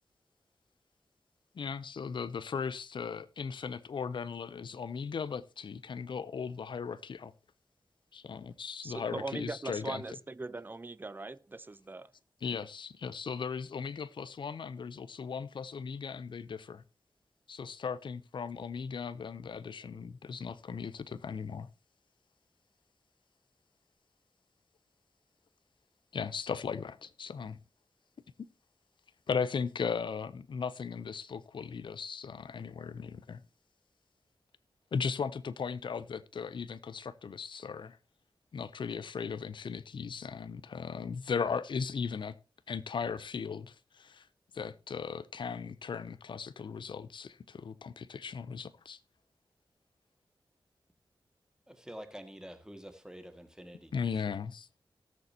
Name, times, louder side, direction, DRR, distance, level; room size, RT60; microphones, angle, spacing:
voice 1, 1.5-7.3 8.1-10.2 12.4-16.8 17.5-21.7 26.1-27.6 29.3-33.4 34.9-38.0 38.5-42.3 42.7-44.3 44.5-49.0 53.9-54.8, left 6 dB, 70° left, 0.6 m, -37 dB
voice 2, 8.8-12.1, right 3 dB, 25° right, 0.6 m, -40 dB
voice 3, 51.7-54.4, equal, 10° right, 1.9 m, -48 dB
18.5 x 6.8 x 2.8 m
wide cardioid pair, 70°, 8 cm